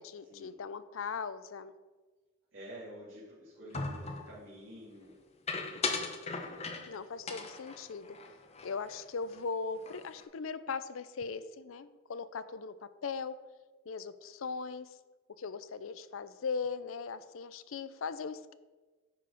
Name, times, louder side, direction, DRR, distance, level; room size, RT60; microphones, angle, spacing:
voice 1, 0.0-1.7 6.9-8.2 8.6-13.3 13.9-15.0 15.4-18.5, left 5 dB, 80° left, 14 dB, 0.5 m, -39 dB
voice 2, 2.5-5.1, equal, 70° right, -9 dB, 2.6 m, -49 dB
sound 1, 3.7-4.3 5.5-7.0 7.3-9.0 9.3-9.5 9.8-10.2, left 4 dB, 30° left, 0.8 m, -38 dB
10.0 x 4.7 x 5.1 m, 1.3 s
head